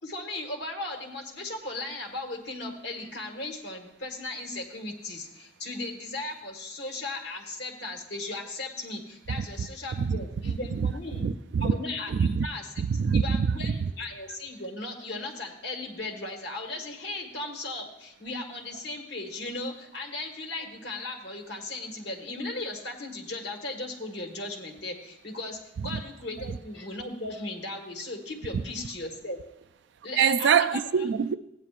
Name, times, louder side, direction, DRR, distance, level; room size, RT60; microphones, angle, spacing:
voice 1, 0.0-11.3 11.6-12.7 13.1-29.4 30.0-30.9, left 2 dB, 60° left, 1.7 m, -37 dB
voice 2, 10.0-10.9 11.2-11.7 12.1-12.5 12.8-13.8 25.8-26.0 30.2-31.4, right 6 dB, 65° right, 0.3 m, -25 dB
16.0 x 9.4 x 2.5 m
head